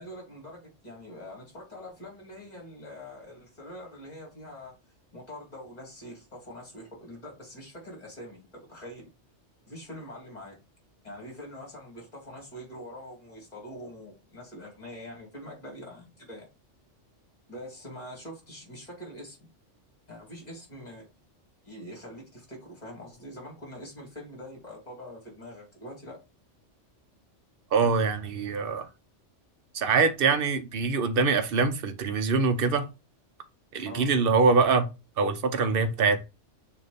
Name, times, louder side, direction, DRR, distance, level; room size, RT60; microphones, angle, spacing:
voice 1, 0.0-4.7 5.1-9.1 9.7-10.6 11.0-16.5 17.5-19.5 20.1-21.1 21.6-26.2 33.8-34.1, equal, 35° left, 3.1 m, -44 dB
voice 2, 27.7-28.9 29.7-32.9 33.7-34.9 35.2-36.2, right 4 dB, 55° right, 1.0 m, -24 dB
6.7 x 2.9 x 5.1 m
omnidirectional pair, 1.2 m